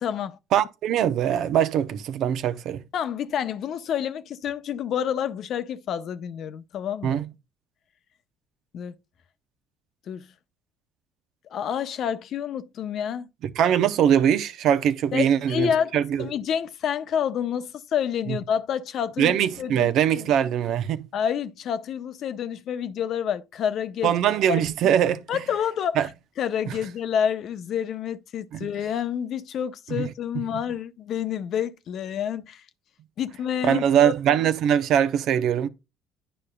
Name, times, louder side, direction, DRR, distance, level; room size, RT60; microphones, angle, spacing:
voice 1, 0.0-0.4 2.9-7.2 8.7-8.9 10.1-10.3 11.5-13.3 15.1-15.9 16.2-20.3 21.1-24.1 24.5-24.9 25.3-26.1 26.4-32.6 33.2-34.1, left 8 dB, 60° left, 0.7 m, -28 dB
voice 2, 0.5-2.8 7.0-7.3 13.4-16.3 18.3-18.4 19.2-21.1 24.0-25.2 26.0-26.1 28.5-28.7 30.0-30.1 33.6-35.7, right 9 dB, 65° right, 0.7 m, -22 dB
10.0 x 5.1 x 2.2 m
supercardioid pair, 70°, 0 cm